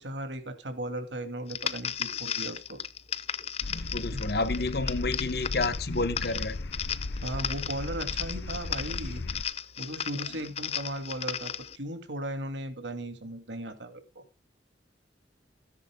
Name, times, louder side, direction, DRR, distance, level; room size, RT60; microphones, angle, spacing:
voice 1, 0.0-2.8 4.1-4.2 7.2-9.3 9.8-14.2, right 1 dB, 85° right, 2.6 m, -37 dB
sound 1, 1.5-11.8, left 9 dB, 35° left, 0.6 m, -35 dB
sound 2, 3.6-9.4, left 2 dB, 80° left, 0.7 m, -36 dB
voice 2, 3.7-6.6, left 3 dB, 60° left, 1.0 m, -30 dB
17.5 x 10.5 x 2.3 m
head